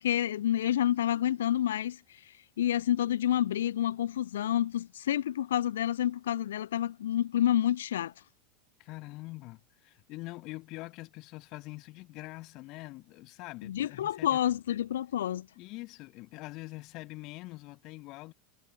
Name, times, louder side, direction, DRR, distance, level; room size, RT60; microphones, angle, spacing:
voice 1, 0.0-2.0 2.3-8.1 13.6-15.5, left 11 dB, 70° left, 0.3 m, -29 dB
voice 2, 8.8-14.3 15.6-18.3, left 21 dB, 50° left, 6.3 m, -44 dB
figure-of-eight pair, 85°, 0 cm